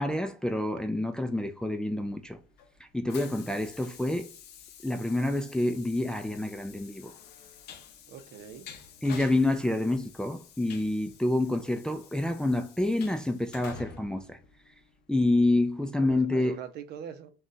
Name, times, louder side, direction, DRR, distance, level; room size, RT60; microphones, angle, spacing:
voice 1, 0.0-2.4 2.9-4.3 4.8-7.1 9.0-14.4 15.1-16.6, left 2 dB, 5° left, 0.3 m, -28 dB
Train, 1.9-15.1, left 7 dB, 75° left, 0.5 m, -50 dB
voice 2, 3.0-3.4 8.1-8.7 16.0-17.3, right 8 dB, 75° right, 0.5 m, -43 dB
2.5 x 2.2 x 3.7 m
cardioid pair, 110°, 17 cm